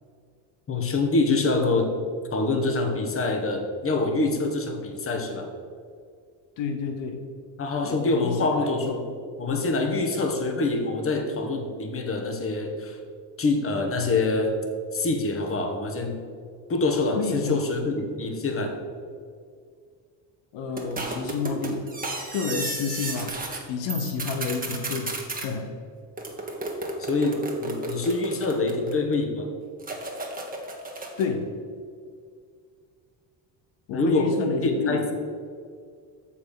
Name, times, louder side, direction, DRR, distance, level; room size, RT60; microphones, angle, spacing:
voice 1, 0.7-1.9 2.3-5.5 7.6-9.1 9.4-13.0 13.4-14.6 14.9-16.2 16.7-18.8 27.0-29.5 33.9-35.1, left 3 dB, 30° left, 4 dB, 1.3 m, -25 dB
voice 2, 6.6-7.2 7.8-8.9 9.9-10.0 17.2-17.6 20.5-21.9 22.3-23.4 23.7-25.2 25.4-25.8 31.2-31.6 33.9-35.0, left 5 dB, 80° left, 5 dB, 1.0 m, -30 dB
sound 1, 20.8-23.6 23.9-25.5 26.2-29.1 29.8-31.3, right 2 dB, 20° right, 1.4 m, -33 dB
6.7 x 5.7 x 6.4 m, 2.2 s
cardioid pair, 95°, 43 cm